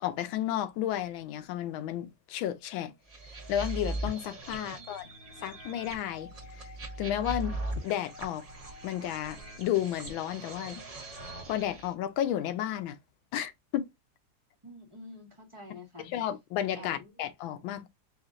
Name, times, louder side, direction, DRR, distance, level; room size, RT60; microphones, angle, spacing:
voice 1, 0.0-2.9 3.5-5.1 5.4-6.3 6.6-6.7 7.0-7.5 7.8-8.5 8.8-10.8 11.5-13.0 13.3-13.8 16.0-17.9, left 11 dB, 85° left, 1.4 m, -32 dB
sound 1, 3.1-11.9, right 2 dB, 70° right, 0.3 m, -40 dB
voice 2, 4.7-5.2 14.6-16.1 16.7-17.1, left 2 dB, 20° right, 0.8 m, -48 dB
4.3 x 2.4 x 3.7 m
omnidirectional pair, 2.2 m